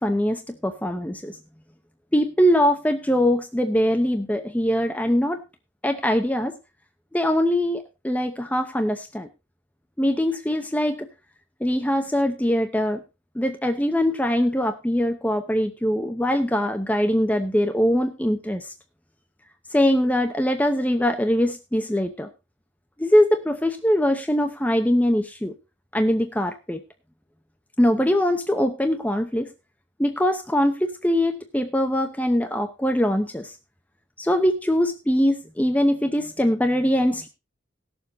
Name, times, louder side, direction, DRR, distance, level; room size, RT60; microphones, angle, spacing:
voice 1, 0.0-1.3 2.1-5.4 5.8-6.5 7.1-9.3 10.0-11.1 11.6-13.0 13.4-18.7 19.7-22.3 23.0-25.5 25.9-26.8 27.8-29.5 30.0-33.5 34.2-37.3, equal, 10° left, 6 dB, 0.7 m, -22 dB
18.0 x 7.1 x 4.0 m, 0.27 s
head